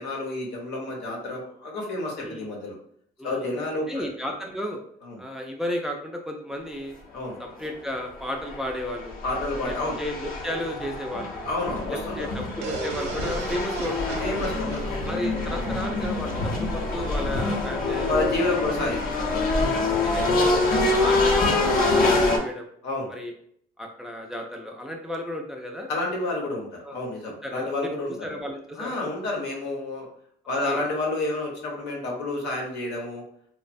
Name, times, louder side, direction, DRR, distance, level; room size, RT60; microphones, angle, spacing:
voice 1, 0.0-2.8 3.2-4.1 5.0-5.2 7.1-7.4 9.2-10.0 11.5-12.2 14.2-15.1 18.1-19.5 22.8-23.1 25.9-28.3 28.7-30.1 30.5-33.2, left 2 dB, 85° left, -1 dB, 0.9 m, -30 dB
voice 2, 3.9-4.8 5.2-7.0 7.4-9.2 9.7-11.5 11.9-14.4 15.0-18.1 19.7-21.8 22.0-22.7 23.1-23.3 23.8-25.9 26.8-27.1 27.4-27.7 28.2-29.0 30.6-30.8, left 1 dB, 5° right, 2 dB, 0.4 m, -33 dB
sound 1, 7.6-7.7 8.3-22.4, left 2 dB, 55° left, 0.7 m, -25 dB
sound 2, 12.6-16.4, right 6 dB, 85° right, 0.4 m, -37 dB
3.1 x 2.1 x 2.5 m, 0.65 s
cardioid pair, 110°, 18 cm